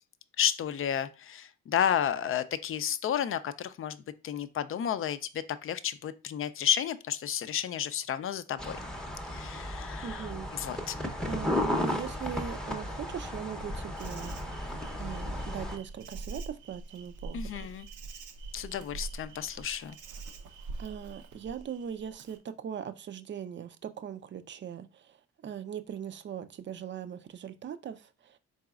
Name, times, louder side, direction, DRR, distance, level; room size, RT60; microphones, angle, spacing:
voice 1, 0.4-4.0 4.2-8.8 9.3-11.0 17.3-17.9 18.5-20.0, left 9 dB, 45° left, 0.4 m, -32 dB
sound 1, 8.6-15.8, left 1 dB, ahead, 0.7 m, -34 dB
voice 2, 10.0-10.5 10.7-10.9 11.3-14.7 15.0-17.7 20.8-25.2 25.4-28.4, right 8 dB, 40° right, 0.5 m, -40 dB
Insect, 14.0-22.4, right 3 dB, 80° right, 0.7 m, -44 dB
4.1 x 3.8 x 2.3 m
cardioid pair, 90°, 30 cm